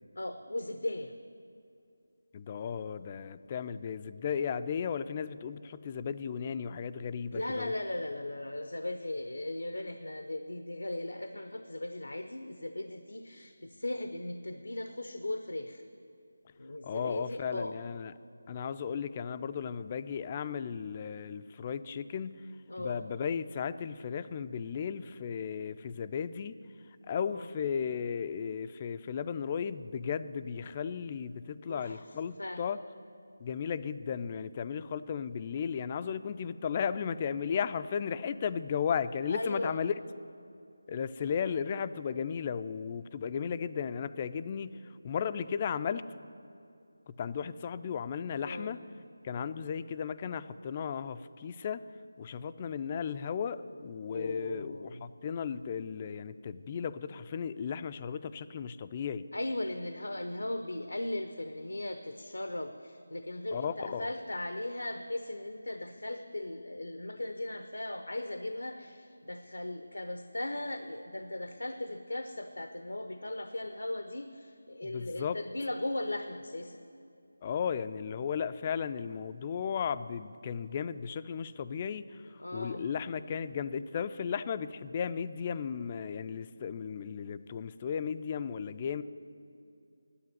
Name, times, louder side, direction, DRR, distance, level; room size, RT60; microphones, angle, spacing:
voice 1, 0.2-1.1 7.3-15.8 16.6-17.7 22.7-23.1 27.3-27.5 31.7-32.0 32.4-32.6 39.3-39.8 48.4-48.8 54.1-55.0 59.3-76.8 82.4-82.9, left 1 dB, 85° left, 8 dB, 0.7 m, -37 dB
voice 2, 2.3-7.7 16.8-18.1 18.5-22.5 22.8-26.6 27.1-32.8 33.4-39.9 40.9-46.0 47.1-48.8 49.2-51.8 52.2-59.3 63.5-64.1 74.8-75.4 77.4-89.0, left 7 dB, 25° left, 13 dB, 0.3 m, -35 dB
9.8 x 8.7 x 9.4 m, 2.5 s
figure-of-eight pair, 165°, 0 cm